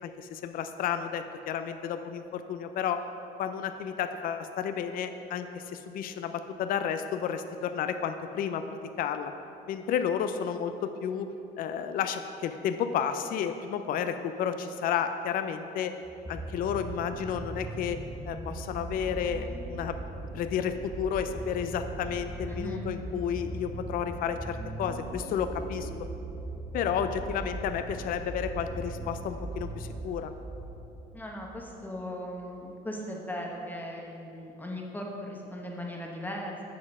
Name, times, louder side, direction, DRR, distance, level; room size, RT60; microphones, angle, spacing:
voice 1, 0.0-3.0 3.4-9.3 9.7-11.3 11.6-16.0 16.3-18.0 18.3-25.9 26.7-30.3, left 8 dB, 60° left, 8 dB, 0.4 m, -32 dB
sound 1, 16.0-31.6 32.4-32.5, right 2 dB, 10° right, 0.6 m, -39 dB
voice 2, 22.5-22.9 31.1-36.6, equal, 10° left, -1 dB, 0.9 m, -38 dB
7.6 x 4.0 x 5.9 m, 2.8 s
cardioid pair, 110°, 17 cm